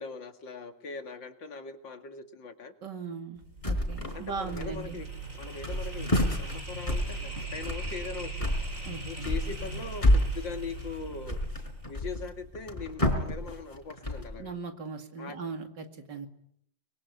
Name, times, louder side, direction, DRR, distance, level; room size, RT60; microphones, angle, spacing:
voice 1, 0.0-2.7 4.1-5.1 5.4-6.1 6.4-8.5 9.0-11.4 11.9-14.5 15.2-15.4, left 4 dB, 85° left, 7 dB, 2.9 m, -40 dB
voice 2, 2.8-5.0 8.8-9.3 14.4-16.3, right 5 dB, 70° right, 7 dB, 3.0 m, -39 dB
sound 1, 3.4-12.5, right 3 dB, 45° right, 5.1 m, -40 dB
sound 2, 3.6-4.2 4.5-5.1 5.4-14.4, left 1 dB, 15° left, 4.3 m, -30 dB
25.0 x 22.0 x 9.4 m, 0.73 s
omnidirectional pair, 1.9 m